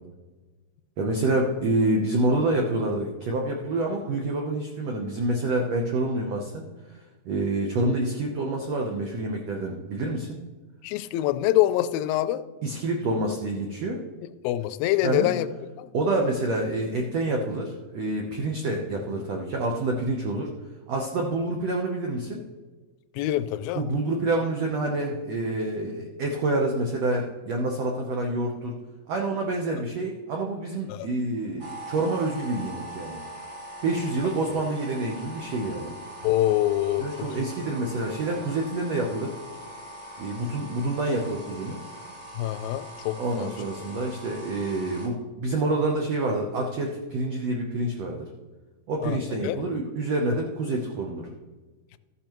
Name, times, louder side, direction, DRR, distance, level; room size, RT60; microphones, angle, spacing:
voice 1, 1.0-6.6 7.2-10.3 12.6-14.0 15.0-15.3 15.9-20.5 20.9-22.4 23.7-28.7 29.1-33.2 33.8-35.9 37.0-39.3 40.2-41.8 43.2-48.2 48.9-51.3, right 2 dB, 75° right, 0 dB, 1.5 m, -27 dB
voice 2, 10.8-12.4 14.4-15.5 15.8-15.9 23.2-23.8 30.9-31.1 34.5-34.6 36.2-37.1 42.4-43.5 49.0-49.2 49.4-49.6, left 14 dB, 85° left, 12 dB, 2.3 m, -25 dB
sound 1, 31.6-45.1, right 1 dB, 30° right, 1.4 m, -42 dB
13.5 x 10.5 x 3.0 m, 1.2 s
omnidirectional pair, 4.2 m